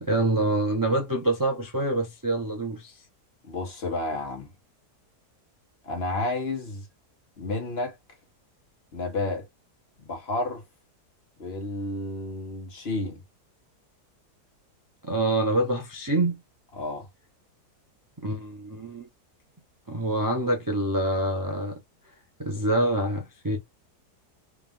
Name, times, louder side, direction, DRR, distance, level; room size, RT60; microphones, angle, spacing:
voice 1, 0.0-3.0 15.0-16.4 18.2-19.0 19.9-21.8 22.4-23.6, right 1 dB, 30° right, 0.3 m, -26 dB
voice 2, 3.4-4.5 5.8-6.9 7.4-7.9 8.9-9.5 10.0-10.6 11.4-13.2 16.7-17.1, left 2 dB, 40° left, 1.4 m, -31 dB
3.6 x 2.4 x 3.6 m
omnidirectional pair, 1.7 m